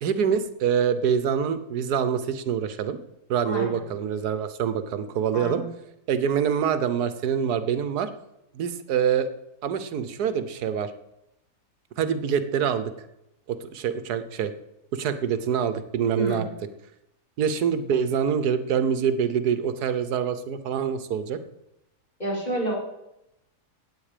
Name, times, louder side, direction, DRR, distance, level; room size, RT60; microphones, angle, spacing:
voice 1, 0.0-3.0 3.3-5.6 6.1-8.1 8.5-9.3 9.6-10.9 12.0-12.9 13.5-14.5 14.9-16.4 17.4-21.4, right 7 dB, 90° right, 11 dB, 1.4 m, -25 dB
voice 2, 5.3-5.7 16.1-16.5 22.2-22.8, right 1 dB, 25° left, -3 dB, 4.1 m, -29 dB
16.0 x 9.0 x 5.0 m, 0.87 s
omnidirectional pair, 1.6 m